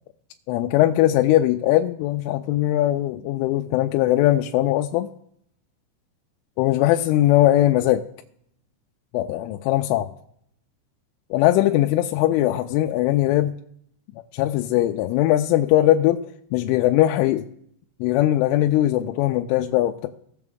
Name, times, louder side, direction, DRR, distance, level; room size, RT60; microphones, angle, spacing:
voice 1, 0.5-5.1 6.6-8.0 9.1-10.1 11.3-13.5 14.3-16.3 16.5-17.4 18.0-20.1, left 14 dB, 85° left, 4 dB, 2.9 m, -20 dB
18.0 x 6.9 x 3.5 m, 0.67 s
omnidirectional pair, 5.8 m